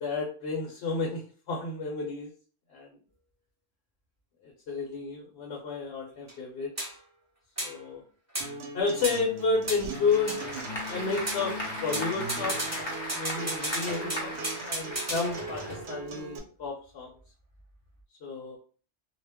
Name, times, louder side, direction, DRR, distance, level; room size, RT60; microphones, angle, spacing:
voice 1, 0.0-2.3 2.7-2.9 4.4-6.9 7.6-8.0 8.7-10.4 10.9-11.5 11.8-12.6 13.1-17.1 18.2-18.6, left 4 dB, 65° left, 0 dB, 0.8 m, -31 dB
sound 1, 6.3-6.4 6.8-7.0 7.6-7.8 8.3-8.6 9.0-9.2 9.7-10.9 11.3-11.5 11.9-16.0, right 1 dB, 15° right, 0.7 m, -35 dB
Acoustic guitar, 8.4-16.4, right 2 dB, 70° right, 0.8 m, -40 dB
Applause / Crowd, 9.6-16.2, left 1 dB, 30° left, 0.6 m, -38 dB
2.2 x 2.0 x 3.4 m, 0.40 s
omnidirectional pair, 1.2 m